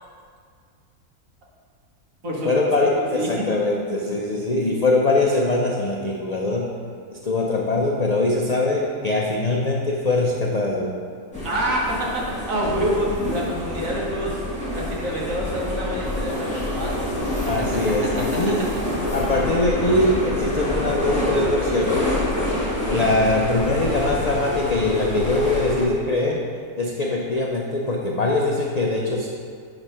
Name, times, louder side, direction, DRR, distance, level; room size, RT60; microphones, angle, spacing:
voice 1, 2.4-6.7 7.2-11.0 17.5-18.7 19.1-22.2 22.9-26.4 26.8-29.3, left 2 dB, 60° left, -2 dB, 0.4 m, -22 dB
voice 2, 3.1-3.5 11.4-14.4 14.7-17.0 22.9-23.1, equal, 65° right, -3 dB, 1.6 m, -27 dB
sound 1, 11.3-25.8, left 1 dB, 5° left, 1.7 m, -26 dB
8.8 x 3.2 x 5.5 m, 2.1 s
omnidirectional pair, 1.5 m